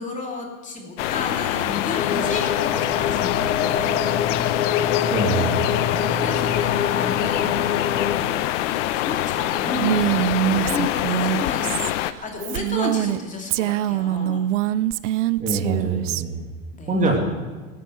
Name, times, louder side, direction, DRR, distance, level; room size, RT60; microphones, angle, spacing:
voice 1, 0.0-4.2 5.8-14.5 16.7-17.0, left 3 dB, 15° left, 0 dB, 2.7 m, -33 dB
sound 1, 1.0-12.1, left 14 dB, 60° left, 0.8 m, -25 dB
sound 2, 2.0-8.2, left 8 dB, 80° left, 2.1 m, -25 dB
voice 2, 5.1-5.6 15.4-16.4 16.9-17.2, right 3 dB, 20° right, 0 dB, 2.6 m, -24 dB
Female speech woman speaking, 9.7-13.2 13.5-16.2, right 13 dB, 60° right, 0.6 m, -23 dB
14.5 x 9.4 x 7.8 m, 1.4 s
hypercardioid pair, 115°, 42 cm